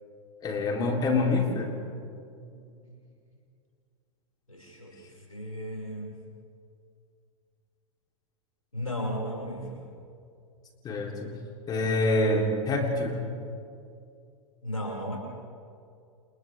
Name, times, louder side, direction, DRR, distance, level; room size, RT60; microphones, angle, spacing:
voice 1, 0.4-1.8 10.8-11.3 11.7-13.2, left 2 dB, 25° left, 1 dB, 3.8 m, -26 dB
voice 2, 4.5-6.2 8.7-9.9 14.6-15.2, equal, 85° left, -2 dB, 6.3 m, -35 dB
30.0 x 29.0 x 3.7 m, 2.4 s
figure-of-eight pair, 95°, 17 cm